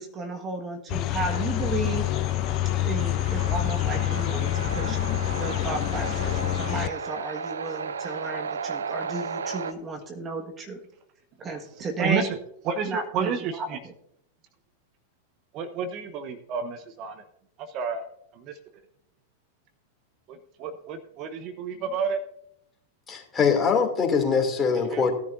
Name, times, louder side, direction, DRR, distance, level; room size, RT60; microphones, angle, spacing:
voice 1, 0.0-2.1 2.8-5.0 5.4-10.8 11.4-12.3 12.9-13.3, right 3 dB, 25° right, 3 dB, 1.6 m, -33 dB
sound 1, 0.9-6.9, left 14 dB, 40° left, 0.6 m, -27 dB
sound 2, 1.2-9.7, right 5 dB, 80° right, 0.6 m, -35 dB
voice 2, 11.5-12.4 12.6-13.8 15.5-17.2 17.6-18.0 18.3-18.6 20.3-22.2 24.9-25.1, right 6 dB, 45° right, 9 dB, 1.0 m, -31 dB
voice 3, 23.1-25.1, left 5 dB, 20° left, 2 dB, 2.7 m, -23 dB
17.0 x 10.5 x 2.6 m, 0.76 s
hypercardioid pair, 100°, 0 cm